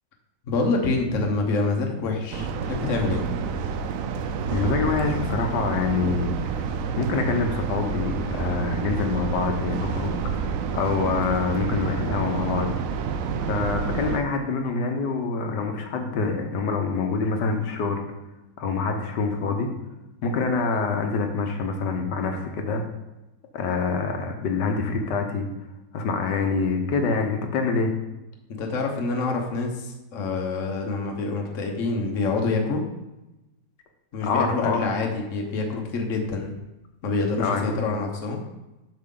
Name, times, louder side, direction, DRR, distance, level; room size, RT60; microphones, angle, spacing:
voice 1, 0.4-3.2 28.5-32.8 34.1-36.5 37.0-38.4, left 3 dB, 50° left, 1 dB, 1.3 m, -26 dB
sound 1, 2.3-14.2, right 6 dB, 70° right, 0.8 m, -28 dB
voice 2, 4.5-6.7 7.0-12.7 13.4-18.0 18.6-19.7 20.2-22.8 23.5-25.5 25.9-27.9 34.2-34.9 37.4-38.0, left 4 dB, 75° left, 4 dB, 1.6 m, -26 dB
7.7 x 6.5 x 3.8 m, 0.99 s
omnidirectional pair, 1.9 m